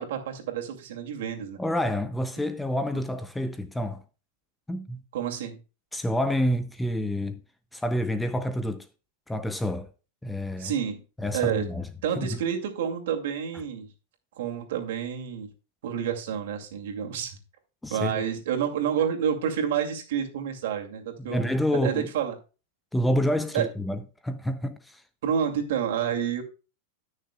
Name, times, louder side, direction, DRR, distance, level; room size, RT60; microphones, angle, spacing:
voice 1, 0.0-1.6 5.1-5.6 10.6-11.0 11.3-11.7 12.0-13.9 14.4-15.5 15.8-17.4 17.9-22.3 23.5-23.7 25.2-26.4, right 8 dB, 70° right, 2.4 m, -29 dB
voice 2, 1.6-4.0 4.7-5.0 5.9-7.4 7.7-8.9 9.3-9.9 10.2-10.7 11.2-11.9 12.2-12.4 17.8-18.2 21.2-22.1 22.9-25.0, equal, 5° left, 0.5 m, -28 dB
18.5 x 6.5 x 2.3 m
supercardioid pair, 160°, 0 cm